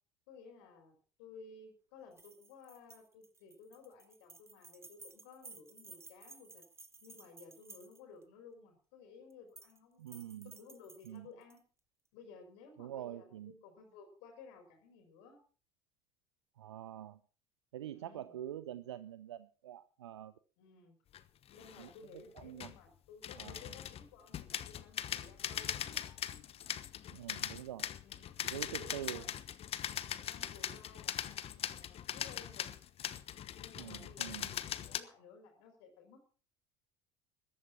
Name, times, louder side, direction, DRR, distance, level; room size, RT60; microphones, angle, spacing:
voice 1, 0.3-6.6 7.0-10.0 10.4-11.6 12.1-15.4 17.9-18.4 20.6-21.0 21.5-26.1 28.0-29.4 30.1-32.7 33.6-36.3, left 5 dB, 70° left, 4 dB, 4.2 m, -56 dB
sound 1, 2.1-8.2 9.3-9.8 10.1-11.6, right 3 dB, 20° right, 2.2 m, -56 dB
voice 2, 10.0-10.5 11.1-11.3 12.8-13.5 16.6-17.2 17.7-20.3 21.8-21.9 22.4-22.7 23.4-23.7 27.1-27.9 28.4-29.3 33.8-34.5, right 11 dB, 85° right, 15 dB, 0.6 m, -45 dB
sound 2, 21.1-21.2 21.5-21.9 22.4-22.8 23.2-35.0, left 10 dB, 45° left, 1.2 m, -41 dB
14.0 x 12.5 x 5.8 m, 0.39 s
hypercardioid pair, 70°, 14 cm